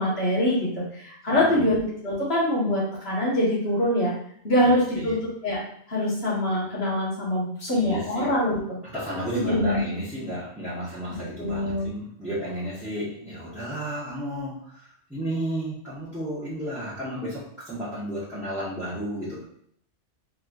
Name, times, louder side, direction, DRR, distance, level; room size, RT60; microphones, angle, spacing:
voice 1, 0.0-4.1 4.4-5.2 5.4-5.6 5.9-8.8 9.3-9.8 11.4-11.9, left 1 dB, 55° left, -7 dB, 2.0 m, -24 dB
voice 2, 1.3-1.7 4.6-5.1 7.7-8.3 8.8-19.4, equal, ahead, -14 dB, 1.5 m, -33 dB
4.7 x 3.3 x 2.6 m, 0.66 s
omnidirectional pair, 1.3 m